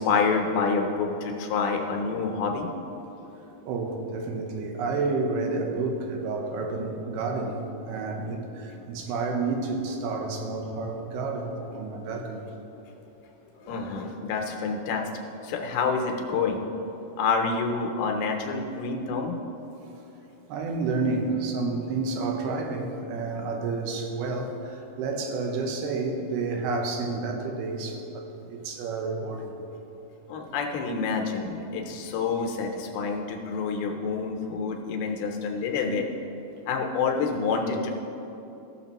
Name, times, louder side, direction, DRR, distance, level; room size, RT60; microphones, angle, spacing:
voice 1, 0.0-2.7 13.7-15.1 15.4-16.6 17.2-19.4 30.3-36.1 36.7-37.9, left 5 dB, 85° left, 2 dB, 2.8 m, -27 dB
voice 2, 3.6-12.4 20.5-29.5, right 3 dB, 90° right, 3 dB, 2.8 m, -30 dB
15.5 x 6.7 x 2.9 m, 3.0 s
omnidirectional pair, 4.4 m